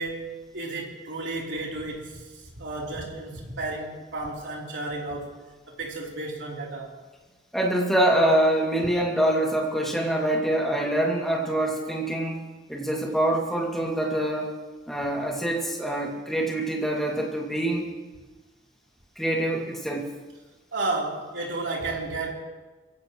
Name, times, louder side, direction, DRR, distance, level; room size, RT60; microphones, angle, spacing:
voice 1, 0.0-2.2 2.6-5.3 5.7-6.9 20.7-22.3, right 2 dB, 75° right, -3 dB, 3.7 m, -32 dB
voice 2, 7.5-12.4 12.7-14.5 14.9-17.8 19.2-20.1, right 1 dB, ahead, -2 dB, 2.4 m, -25 dB
23.0 x 16.5 x 3.2 m, 1.3 s
head